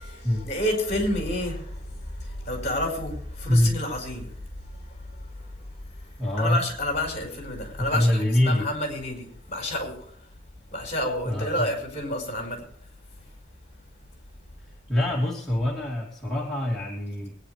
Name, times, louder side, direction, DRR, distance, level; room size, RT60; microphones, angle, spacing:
voice 1, 0.0-10.4 10.7-13.3, left 1 dB, 35° left, 4.8 m, -31 dB
voice 2, 6.2-6.6 7.8-8.7 11.3-11.7 14.9-17.4, left 1 dB, 5° left, 2.9 m, -24 dB
22.0 x 10.0 x 3.4 m
head